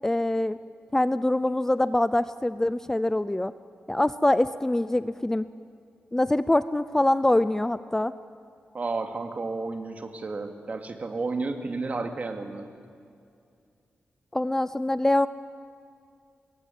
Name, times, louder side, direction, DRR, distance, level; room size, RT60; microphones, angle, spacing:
voice 1, 0.0-0.6 0.9-3.5 3.9-5.4 6.1-8.1 14.3-15.3, left 1 dB, 10° left, 14 dB, 0.5 m, -24 dB
voice 2, 8.7-12.7, right 3 dB, 40° right, 5 dB, 2.5 m, -32 dB
25.0 x 21.5 x 9.5 m, 2.4 s
wide cardioid pair, 115°, 4 cm